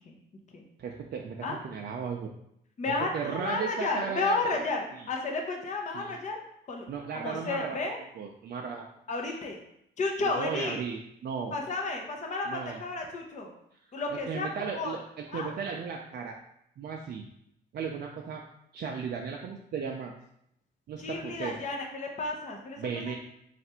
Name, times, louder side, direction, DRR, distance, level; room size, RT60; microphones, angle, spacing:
voice 1, 0.8-2.3 3.1-4.4 4.9-5.1 5.9-6.2 6.9-7.8 8.2-8.8 10.4-11.6 12.5-12.8 14.1-16.4 16.8-17.2 17.7-18.4 18.7-20.1 20.9-21.5 22.8-23.2, right 6 dB, 55° right, 1 dB, 0.5 m, -35 dB
voice 2, 2.8-4.8 5.1-6.4 6.7-6.8 7.1-8.0 9.1-9.6 10.0-10.8 11.5-13.5 13.9-15.0 15.3-15.5 21.0-22.8 23.0-23.2, left 3 dB, 35° left, 1 dB, 0.7 m, -32 dB
3.3 x 2.5 x 4.2 m, 0.75 s
cardioid pair, 90°, 20 cm